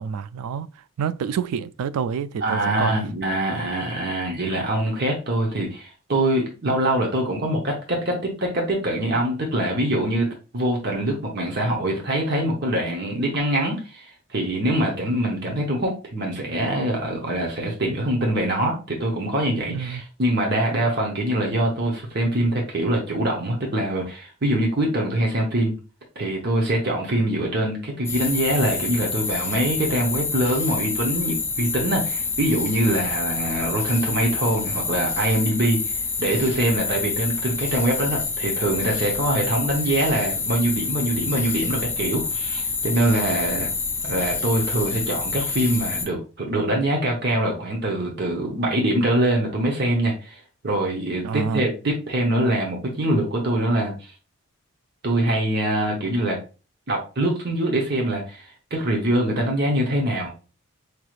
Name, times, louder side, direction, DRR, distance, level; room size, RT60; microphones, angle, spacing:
voice 1, 0.0-3.1 19.7-20.0 51.2-51.7, right 6 dB, 90° right, 0.3 m, -28 dB
voice 2, 2.4-10.3 10.5-25.8 26.2-43.7 44.0-54.1 55.0-56.4 56.9-60.3, right 1 dB, 50° right, 0.9 m, -24 dB
sound 1, 28.0-46.1, left 4 dB, 10° left, 0.3 m, -27 dB
4.7 x 3.1 x 2.4 m
head